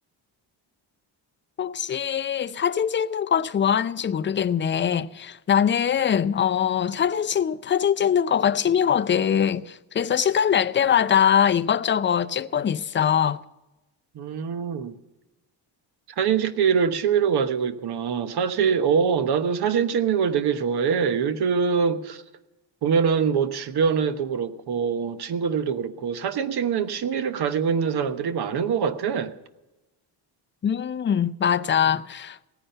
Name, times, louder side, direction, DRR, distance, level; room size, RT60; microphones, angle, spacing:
voice 1, 1.6-13.4 30.6-32.4, left 8 dB, 25° left, 0.5 m, -22 dB
voice 2, 14.1-14.9 16.2-22.2 22.8-29.3, right 6 dB, 60° right, 1.2 m, -24 dB
17.0 x 10.0 x 6.7 m
cardioid pair, 135°, 44 cm